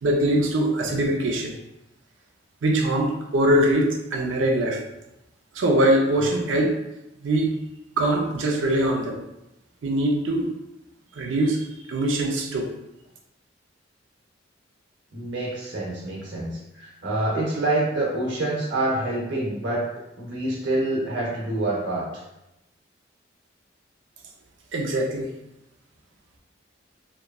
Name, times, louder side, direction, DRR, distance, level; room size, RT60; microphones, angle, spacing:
voice 1, 0.0-1.5 2.6-4.8 5.5-6.8 7.2-7.5 8.0-9.2 9.8-10.5 11.2-12.7 24.7-25.3, right 1 dB, 85° right, 1 dB, 0.4 m, -22 dB
voice 2, 15.1-19.8 20.2-22.1, right 2 dB, 70° right, -4 dB, 0.8 m, -26 dB
2.9 x 2.3 x 2.2 m, 0.89 s
head